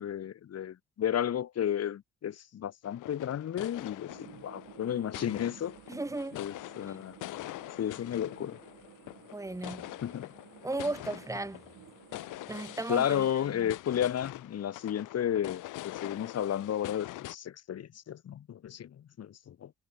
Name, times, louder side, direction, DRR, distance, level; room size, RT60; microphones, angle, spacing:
voice 1, 0.0-5.7 6.3-7.2 7.8-8.6 10.0-10.3 12.9-19.7, left 10 dB, 55° left, 1.5 m, -33 dB
sound 1, 2.8-17.3, left 17 dB, 90° left, 1.7 m, -45 dB
sound 2, 4.1-12.8, right 12 dB, 75° right, 5.7 m, -54 dB
voice 2, 5.9-6.4 9.3-9.9 10.6-11.6 12.5-13.1, right 2 dB, 10° right, 2.2 m, -35 dB
cardioid pair, 90°, 30 cm